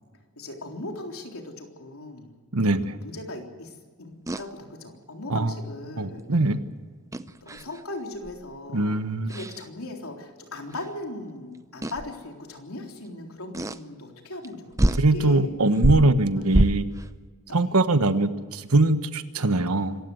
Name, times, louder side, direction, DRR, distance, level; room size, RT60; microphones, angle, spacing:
voice 1, 0.4-2.4 3.0-6.2 7.3-9.0 9.2-15.5 16.3-16.5 17.5-17.8, left 2 dB, 70° left, 2 dB, 3.7 m, -38 dB
voice 2, 2.5-3.0 5.3-5.5 6.0-6.6 8.7-9.3 15.0-16.9 17.5-20.0, right 2 dB, 80° right, 11 dB, 1.3 m, -22 dB
sound 1, 4.3-4.5 7.1-7.8 8.2-8.5 9.3-9.6 10.8-10.9 11.8-12.1 13.5-13.8 14.4-14.5 14.8-15.1 15.7-17.1, right 1 dB, 15° right, 0.6 m, -25 dB
26.5 x 15.5 x 7.9 m, 1.5 s
head